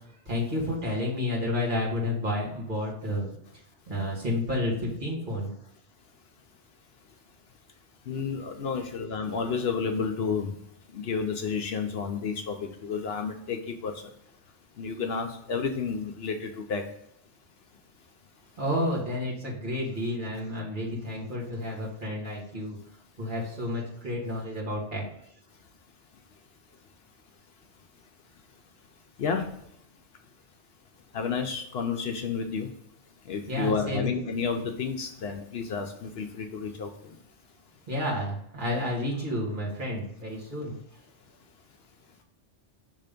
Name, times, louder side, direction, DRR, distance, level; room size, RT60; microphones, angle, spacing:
voice 1, 0.3-3.3 3.9-5.5 18.6-22.8 23.2-25.0 33.5-34.1 37.9-40.7, left 1 dB, 45° right, -4 dB, 1.9 m, -30 dB
voice 2, 8.0-10.6 10.9-14.1 14.8-16.9 29.2-29.6 31.1-32.7 33.2-37.2, left 5 dB, 65° left, 4 dB, 0.8 m, -31 dB
5.5 x 3.3 x 5.1 m, 0.77 s
omnidirectional pair, 1.2 m